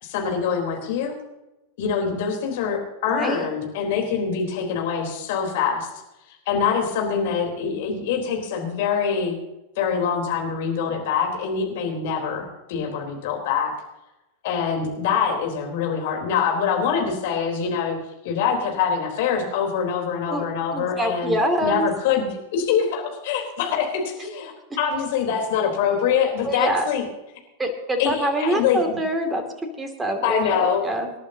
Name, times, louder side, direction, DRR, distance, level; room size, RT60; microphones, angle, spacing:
voice 1, 0.0-1.1 1.8-5.9 6.5-9.4 9.8-13.7 14.4-18.0 18.2-21.4 21.6-24.5 24.8-27.0 28.0-29.0 30.2-30.8, left 7 dB, 50° left, 1 dB, 3.9 m, -24 dB
voice 2, 3.1-3.5 20.3-20.4 20.7-21.9 26.4-26.9 27.6-29.4 29.8-31.1, right 1 dB, 15° right, 6 dB, 2.6 m, -25 dB
27.0 x 11.5 x 2.9 m, 0.98 s
figure-of-eight pair, 90°, 0 cm